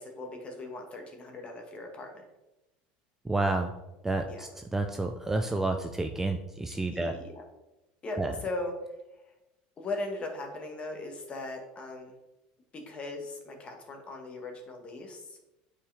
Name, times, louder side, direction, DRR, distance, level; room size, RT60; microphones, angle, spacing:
voice 1, 0.0-2.2 4.3-4.5 6.9-7.4 8.0-8.7 9.1-9.2 9.8-12.1 12.7-15.4, left 2 dB, 30° left, 3 dB, 1.7 m, -39 dB
voice 2, 3.2-3.7 4.0-7.1 8.2-8.3, right 2 dB, 10° right, 5 dB, 0.5 m, -30 dB
8.5 x 4.9 x 3.5 m, 0.98 s
supercardioid pair, 105°, 4 cm